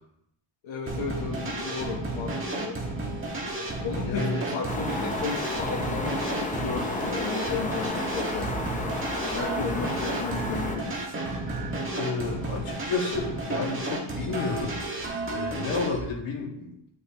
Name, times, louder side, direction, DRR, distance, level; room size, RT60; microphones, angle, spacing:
voice 1, 0.6-2.8 3.8-8.5 9.3-11.1, left 5 dB, 65° left, -3 dB, 1.3 m, -34 dB
sound 1, 0.9-16.0, right 2 dB, 25° right, 1.7 m, -32 dB
voice 2, 4.0-4.4 5.0-5.1 11.9-14.8 15.3-16.7, left 4 dB, 85° left, -2 dB, 2.3 m, -31 dB
sound 2, 4.7-10.8, left 2 dB, 15° left, 0.8 m, -32 dB
sound 3, 7.3-12.4, right 6 dB, 40° right, 0.8 m, -45 dB
9.6 x 6.4 x 3.0 m, 0.74 s
cardioid pair, 155°, 50 cm